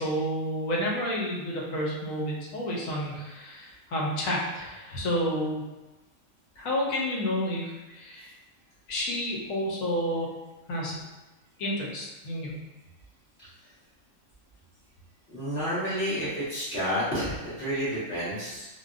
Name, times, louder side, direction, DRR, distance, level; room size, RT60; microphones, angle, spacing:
voice 1, 0.0-5.6 6.6-8.3 8.9-10.3 10.7-10.9 11.6-12.5, equal, 90° left, -3 dB, 1.1 m, -30 dB
voice 2, 15.3-18.7, equal, 40° left, -13 dB, 1.6 m, -30 dB
3.3 x 2.1 x 2.4 m, 1.1 s
omnidirectional pair, 1.4 m